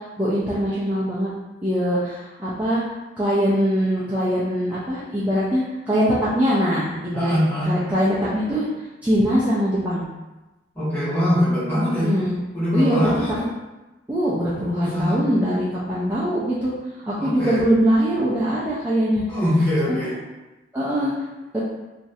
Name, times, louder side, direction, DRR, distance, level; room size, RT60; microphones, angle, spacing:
voice 1, 0.2-1.3 1.6-2.8 3.2-7.4 7.7-8.7 9.0-10.1 12.0-12.4 12.7-13.1 14.1-16.7 17.1-19.2 19.9-20.1 20.7-21.1 21.5-21.6, equal, 10° right, -10 dB, 0.4 m, -22 dB
voice 2, 7.1-7.8 10.7-12.1 12.5-13.5 14.7-15.2 17.2-17.6 19.3-20.2, left 1 dB, 10° left, -12 dB, 1.4 m, -22 dB
3.0 x 2.4 x 2.7 m, 1.1 s
head